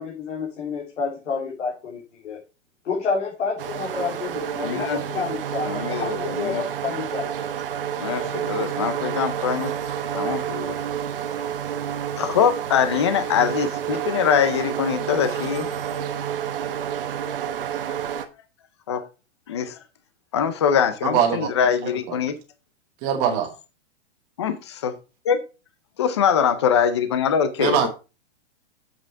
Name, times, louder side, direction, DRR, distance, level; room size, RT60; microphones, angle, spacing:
voice 1, 0.0-2.4 2.8-7.5, left 5 dB, 90° left, -3 dB, 3.2 m, -29 dB
sound 1, 3.6-18.3, right 9 dB, 50° right, 1.0 m, -29 dB
voice 2, 4.6-5.2 5.6-6.6 8.0-9.7 10.1-10.7 12.1-15.7 18.9-19.0 19.5-19.8 20.3-22.3 24.4-24.9 25.2-25.4 26.0-27.9, left 7 dB, 25° left, 11 dB, 0.5 m, -23 dB
voice 3, 21.0-21.5 21.8-21.9 23.0-23.5 27.6-27.9, right 8 dB, 20° right, 4 dB, 1.2 m, -22 dB
7.7 x 6.2 x 4.4 m, 0.30 s
hypercardioid pair, 180°, 36 cm